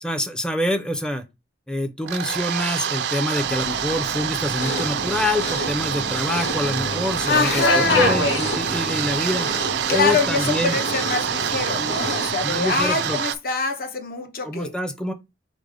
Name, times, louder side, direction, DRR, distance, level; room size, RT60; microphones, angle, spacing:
voice 1, 0.0-1.2 1.7-9.5 9.9-10.8 12.4-13.2 14.4-15.1, left 1 dB, 5° left, 0.5 m, -26 dB
sound 1, 2.0-13.4, right 9 dB, 65° right, 0.4 m, -27 dB
Subway metro underground, 3.3-13.2, left 1 dB, 75° left, 1.2 m, -30 dB
sound 2, 4.6-12.3, equal, 35° left, 1.5 m, -31 dB
voice 2, 7.3-8.2 9.9-14.7, left 4 dB, 50° left, 0.8 m, -24 dB
5.1 x 2.1 x 4.8 m
head